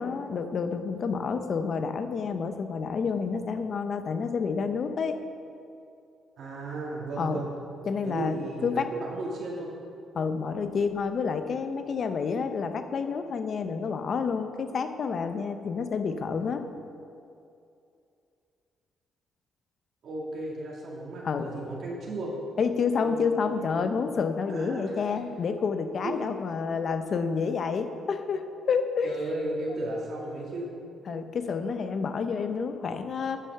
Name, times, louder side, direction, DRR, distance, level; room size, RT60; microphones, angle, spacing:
voice 1, 0.0-5.2 7.2-7.4 7.8-8.4 8.6-8.9 10.1-16.6 21.2-21.5 22.6-29.1 31.1-33.4, left 5 dB, 55° left, 8 dB, 0.7 m, -29 dB
voice 2, 6.4-7.5 8.0-9.7 20.0-22.3 23.0-24.0 24.5-24.9 26.0-26.3 29.0-30.7, right 2 dB, 60° right, -4 dB, 2.0 m, -35 dB
9.8 x 5.7 x 6.6 m, 2.6 s
cardioid pair, 90°, 0 cm